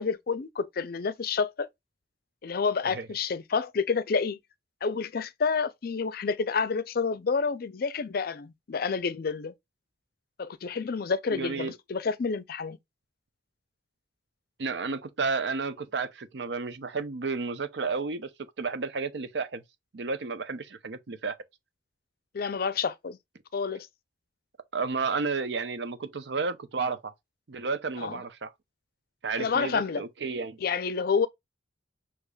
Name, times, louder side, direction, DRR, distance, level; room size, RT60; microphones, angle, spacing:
voice 1, 0.0-1.7 2.4-4.4 4.8-9.5 10.4-12.8 22.3-23.2 23.5-23.9 28.0-28.2 29.4-30.0 30.6-31.3, left 5 dB, 55° left, 0.5 m, -29 dB
voice 2, 11.3-11.7 14.6-18.3 18.6-19.6 19.9-21.4 24.7-27.1 27.5-28.5 29.2-30.6, right 4 dB, 70° right, 0.6 m, -32 dB
6.5 x 2.9 x 2.3 m
head